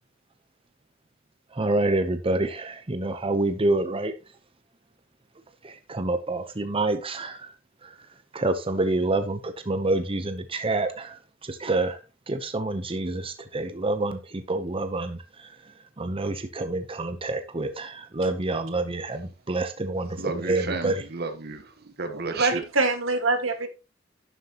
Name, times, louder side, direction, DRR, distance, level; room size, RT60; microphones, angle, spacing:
voice 1, 1.5-4.1 5.6-7.5 7.8-8.0 8.3-12.0 12.3-21.0, right 2 dB, 30° right, 0.8 m, -27 dB
voice 2, 20.1-22.6, right 4 dB, 55° right, 1.2 m, -32 dB
voice 3, 22.1-23.7, right 3 dB, 85° right, 1.8 m, -25 dB
11.5 x 7.8 x 3.0 m
head